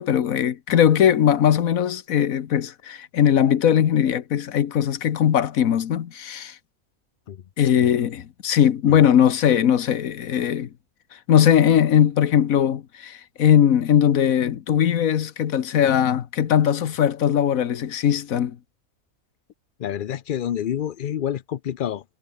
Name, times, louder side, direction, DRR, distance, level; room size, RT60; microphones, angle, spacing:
voice 1, 0.0-6.5 7.6-10.7 11.3-18.6, left 9 dB, 75° left, 1.4 m, -19 dB
voice 2, 19.8-22.0, left 10 dB, 55° left, 0.5 m, -28 dB
omnidirectional pair, 1.4 m